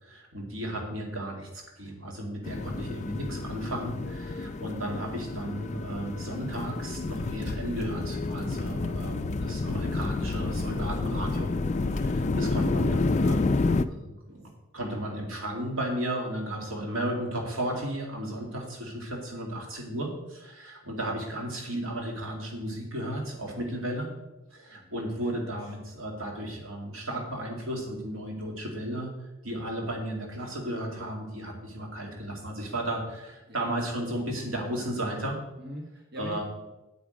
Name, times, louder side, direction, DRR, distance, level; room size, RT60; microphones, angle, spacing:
voice 1, 0.0-11.5 11.9-24.1 24.5-29.1 29.4-35.4 36.2-36.4, right 1 dB, 90° right, 1 dB, 2.3 m, -34 dB
sound 1, 2.4-13.9, left 3 dB, 35° left, 0.4 m, -29 dB
voice 2, 35.6-36.4, left 1 dB, 55° right, 1 dB, 1.5 m, -42 dB
8.6 x 8.6 x 5.1 m, 1.0 s
head